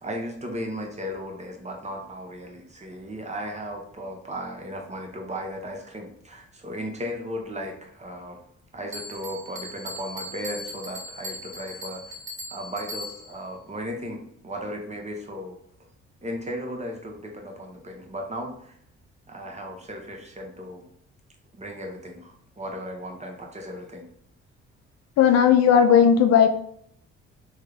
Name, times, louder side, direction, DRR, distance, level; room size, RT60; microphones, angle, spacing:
voice 1, 0.0-8.4 8.7-12.2 12.5-15.6 16.2-18.7 19.3-20.9 21.5-24.1, equal, 20° right, 2 dB, 0.9 m, -36 dB
Bell, 8.9-13.4, equal, 40° right, 1.3 m, -39 dB
voice 2, 25.2-26.5, left 8 dB, 55° left, 7 dB, 0.4 m, -16 dB
3.5 x 2.2 x 3.3 m, 0.67 s
hypercardioid pair, 50°, 31 cm